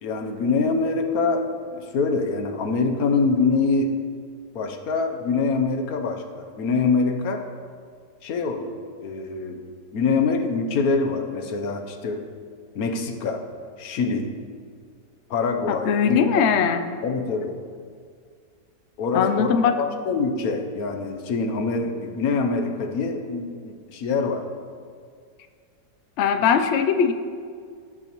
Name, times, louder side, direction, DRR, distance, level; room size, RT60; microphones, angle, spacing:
voice 1, 0.0-4.0 4.5-7.5 8.2-9.7 9.9-12.3 12.7-13.5 13.8-14.3 15.3-16.5 17.0-17.6 19.0-24.5, left 4 dB, 60° left, 6 dB, 1.2 m, -25 dB
voice 2, 15.7-16.8 19.1-19.8 26.2-27.1, left 7 dB, 85° left, 8 dB, 0.6 m, -20 dB
17.0 x 6.2 x 3.0 m, 2.1 s
omnidirectional pair, 1.9 m